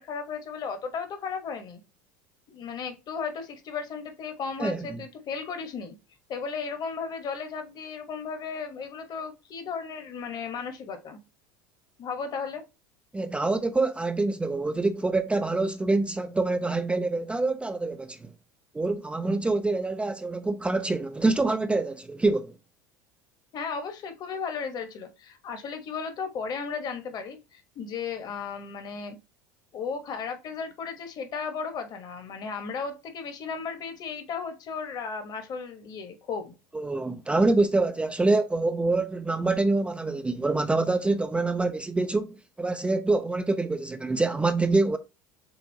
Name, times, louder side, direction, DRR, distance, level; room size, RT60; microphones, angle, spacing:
voice 1, 0.0-1.8 2.5-5.9 6.3-11.2 12.0-12.6 23.5-29.2 29.7-36.5, left 5 dB, 45° left, 1.3 m, -35 dB
voice 2, 13.1-18.3 18.7-22.5 36.7-45.0, right 3 dB, 10° right, 0.4 m, -26 dB
6.9 x 2.5 x 2.8 m
hypercardioid pair, 80°, 10 cm